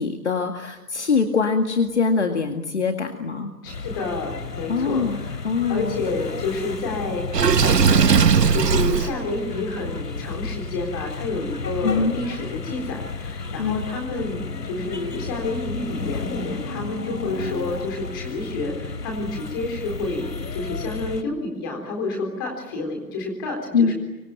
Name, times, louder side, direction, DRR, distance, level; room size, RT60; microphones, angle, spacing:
voice 1, 0.0-3.5 4.7-6.0 11.8-12.1 13.6-13.8 23.7-23.9, left 5 dB, 45° left, 5 dB, 2.1 m, -23 dB
voice 2, 3.6-5.4 5.7-8.1 8.5-23.9, left 2 dB, 15° left, 2 dB, 3.9 m, -29 dB
sound 1, 3.7-21.2, left 4 dB, 75° left, 3.3 m, -33 dB
Water / Sink (filling or washing), 7.3-9.1, right 6 dB, 75° right, 1.5 m, -17 dB
25.5 x 25.0 x 9.2 m, 1.0 s
hypercardioid pair, 180°, 49 cm